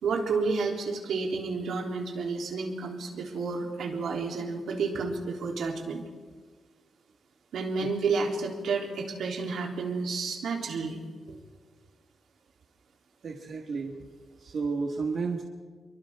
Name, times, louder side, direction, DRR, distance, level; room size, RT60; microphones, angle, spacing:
voice 1, 0.0-6.0 7.5-11.0 11.3-11.4, right 4 dB, 85° right, 0 dB, 3.4 m, -30 dB
voice 2, 13.2-14.0 14.4-15.4, right 4 dB, 50° right, 1 dB, 1.7 m, -31 dB
30.0 x 23.5 x 3.7 m, 1.5 s
wide cardioid pair, 165°, 0 cm